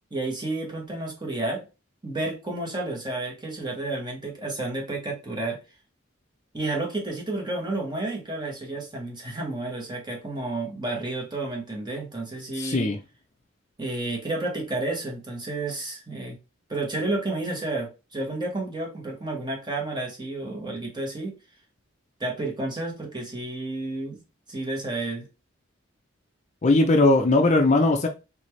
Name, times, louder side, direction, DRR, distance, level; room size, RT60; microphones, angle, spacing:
voice 1, 0.1-1.6 2.0-5.6 6.5-12.9 13.8-16.4 16.7-21.3 22.2-24.2 24.5-25.3, right 2 dB, 20° right, 1.3 m, -31 dB
voice 2, 12.5-13.0 26.6-28.1, left 2 dB, 35° left, 0.5 m, -19 dB
4.2 x 3.4 x 3.1 m
head